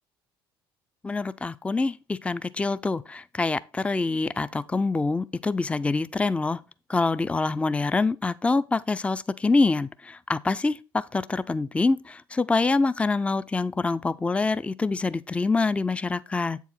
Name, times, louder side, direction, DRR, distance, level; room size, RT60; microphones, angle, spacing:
voice 1, 1.0-6.6 6.9-16.6, left 3 dB, 10° left, 0.4 m, -25 dB
7.8 x 4.6 x 4.3 m
hypercardioid pair, 60°, 11 cm